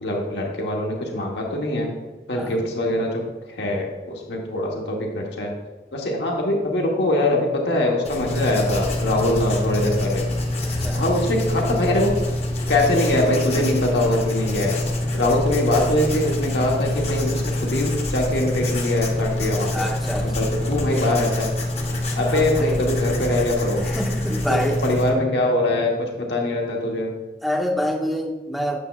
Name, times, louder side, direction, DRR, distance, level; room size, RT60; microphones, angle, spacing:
voice 1, 0.0-1.9 2.3-5.5 5.9-10.3 10.9-12.1 12.7-14.8 15.1-19.9 20.2-21.5 22.2-23.8 24.5-27.1, left 1 dB, 75° left, 0 dB, 1.1 m, -23 dB
Writing, 8.0-25.1, left 1 dB, 35° left, 0.8 m, -25 dB
voice 2, 19.7-20.4 22.3-22.9 23.8-24.8 27.4-28.8, equal, ahead, 1 dB, 0.6 m, -26 dB
8.3 x 6.8 x 2.4 m, 1.2 s
head